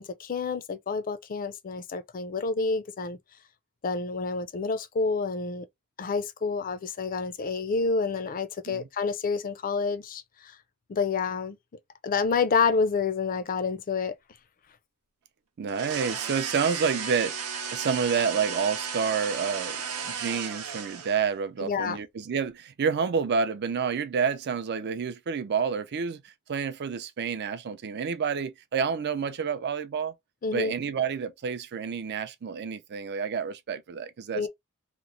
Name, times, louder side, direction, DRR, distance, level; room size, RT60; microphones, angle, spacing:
voice 1, 0.0-3.2 3.8-5.7 6.0-10.5 10.9-11.6 12.0-14.1 21.6-22.0 30.4-30.7 34.3-34.5, left 4 dB, 40° left, 0.4 m, -28 dB
voice 2, 15.6-17.4 17.7-30.1 30.5-34.5, right 6 dB, 50° right, 0.4 m, -29 dB
sound 1, 15.7-21.3, right 6 dB, 85° right, 0.8 m, -34 dB
3.0 x 2.0 x 3.7 m
head